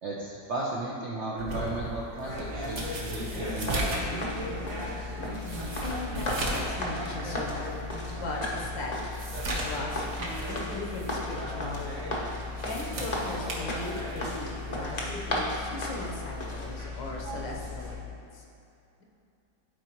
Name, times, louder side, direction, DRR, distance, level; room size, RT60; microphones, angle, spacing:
voice 1, 0.0-4.1, right 2 dB, 65° right, -5 dB, 0.7 m, -35 dB
sound 1, 1.4-6.8 7.1-7.2 7.8-7.9 8.3-10.6 10.9-11.2 12.4-14.3 15.4-15.7, right 1 dB, 50° right, 1.1 m, -36 dB
sound 2, 2.2-17.9, left 2 dB, 90° right, 2.4 m, -37 dB
sound 3, 3.5-16.7, left 1 dB, 40° left, 0.6 m, -36 dB
voice 2, 5.8-8.9 9.2-9.4 9.6-12.1 12.6-18.4, left 2 dB, 85° left, -2 dB, 1.7 m, -38 dB
11.5 x 4.6 x 3.0 m, 2.7 s
omnidirectional pair, 2.0 m